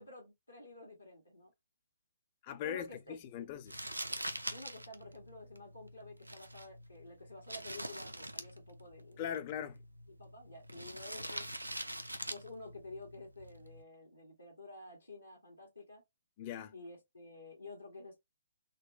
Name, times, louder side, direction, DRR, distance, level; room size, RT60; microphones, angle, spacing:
voice 1, 0.0-1.5 2.6-3.5 4.5-9.2 10.1-11.5 12.3-16.0 16.7-18.2, left 2 dB, 80° left, 1.4 m, -51 dB
voice 2, 2.4-3.8 9.2-9.8 16.4-16.7, left 9 dB, 30° left, 0.5 m, -40 dB
Crumpling crinkling, 3.7-13.8, right 1 dB, 90° right, 0.5 m, -45 dB
3.9 x 2.1 x 2.4 m
figure-of-eight pair, 130°, 0 cm